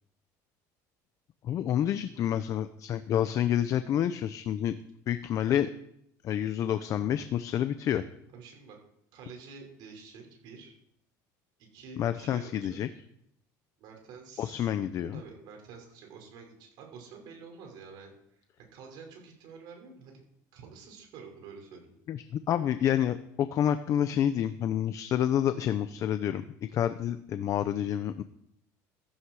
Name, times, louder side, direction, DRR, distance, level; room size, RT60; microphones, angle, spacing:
voice 1, 1.4-4.7 5.1-5.7 6.2-8.0 12.0-12.9 14.4-15.2 22.1-28.2, left 10 dB, 40° left, 11 dB, 0.7 m, -28 dB
voice 2, 8.3-8.8 9.1-10.7 11.7-12.8 13.8-14.7 15.1-18.4 18.7-20.2 20.5-21.9, right 5 dB, 60° right, 1 dB, 6.2 m, -48 dB
15.5 x 14.5 x 4.9 m, 0.74 s
cardioid pair, 150°, 8 cm